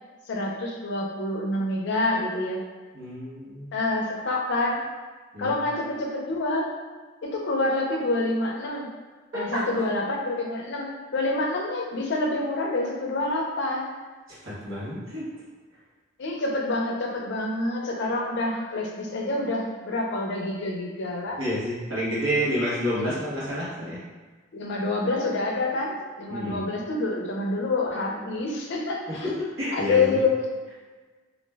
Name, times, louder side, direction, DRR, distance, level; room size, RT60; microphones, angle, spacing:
voice 1, 0.3-2.6 3.7-4.8 5.4-6.7 7.2-8.9 9.3-13.9 16.2-21.4 24.5-29.3 29.7-30.3, left 2 dB, 60° left, -1 dB, 0.5 m, -27 dB
voice 2, 2.9-3.7 5.3-5.6 9.3-9.6 14.4-15.3 21.4-24.0 26.3-26.6 29.1-30.2, equal, 70° right, -8 dB, 1.0 m, -29 dB
2.4 x 2.1 x 3.3 m, 1.3 s
head